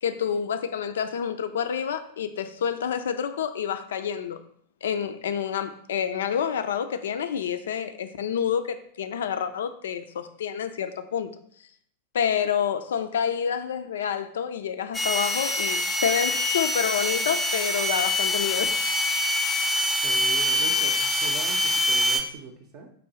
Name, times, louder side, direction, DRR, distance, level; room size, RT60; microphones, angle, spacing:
voice 1, 0.0-4.4 4.8-11.4 12.1-18.8, left 8 dB, 60° left, 10 dB, 0.3 m, -28 dB
sound 1, 14.9-22.2, left 1 dB, 10° left, 0.5 m, -25 dB
voice 2, 20.0-22.9, right 5 dB, 45° right, 1 dB, 0.5 m, -40 dB
4.4 x 3.0 x 4.0 m, 0.62 s
figure-of-eight pair, 90°, 0 cm